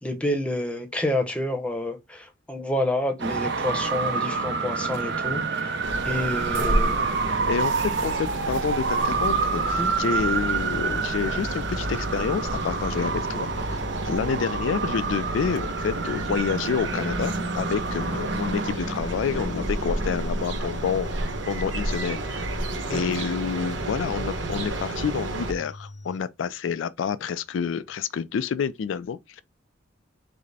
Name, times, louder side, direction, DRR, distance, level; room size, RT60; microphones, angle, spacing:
voice 1, 0.0-5.8 6.0-7.2 9.8-9.9 22.9-23.1, left 1 dB, 5° left, 0.8 m, -29 dB
Traffic noise roadway noise, 3.2-18.7, right 4 dB, 65° right, 0.7 m, -28 dB
sound 1, 5.8-25.5, right 1 dB, 80° right, 1.1 m, -31 dB
voice 2, 7.4-13.8 14.1-22.5 22.9-29.4, left 6 dB, 80° left, 0.3 m, -28 dB
sound 2, 10.5-26.2, left 2 dB, 35° left, 0.6 m, -43 dB
5.1 x 2.1 x 4.0 m
head